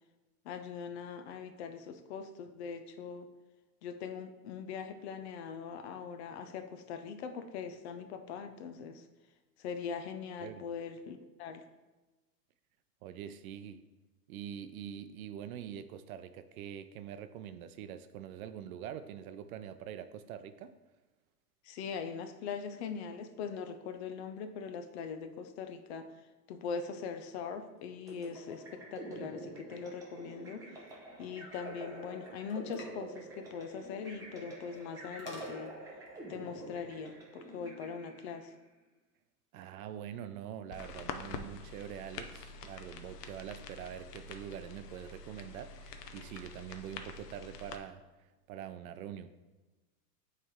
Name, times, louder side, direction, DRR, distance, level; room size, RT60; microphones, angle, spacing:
voice 1, 0.4-3.3 3.8-9.0 9.6-11.7 21.6-26.1 26.5-30.7 31.2-35.7 36.3-38.6, left 6 dB, 45° left, 8 dB, 0.5 m, -41 dB
voice 2, 13.0-13.8 14.3-20.7 39.5-49.3, right 9 dB, 60° right, 10 dB, 0.6 m, -44 dB
sound 1, 28.1-38.5, right 1 dB, 5° right, 0.6 m, -47 dB
sound 2, 30.8-37.2, left 2 dB, 25° left, 1.1 m, -56 dB
sound 3, 40.7-47.8, left 5 dB, 75° left, 0.7 m, -46 dB
9.1 x 3.4 x 3.6 m, 1.1 s
supercardioid pair, 140°, 47 cm